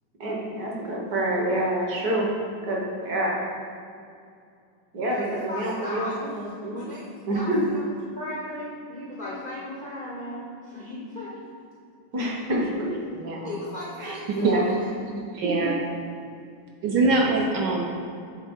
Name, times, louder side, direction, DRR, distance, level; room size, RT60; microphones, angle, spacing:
voice 1, 0.2-2.3 2.6-3.4 4.9-6.9 7.3-7.6 12.1-13.0 14.3-14.6 15.6-15.7, right 1 dB, 55° right, -2 dB, 1.3 m, -27 dB
voice 2, 5.1-6.2 6.4-11.4 13.4-14.9, left 1 dB, 70° left, -7 dB, 0.4 m, -37 dB
voice 3, 13.2-13.5 14.0-14.2 14.4-14.6 15.3-15.8 16.8-17.9, right 3 dB, 75° right, -1 dB, 1.1 m, -23 dB
8.1 x 3.6 x 3.5 m, 2.4 s
omnidirectional pair, 2.2 m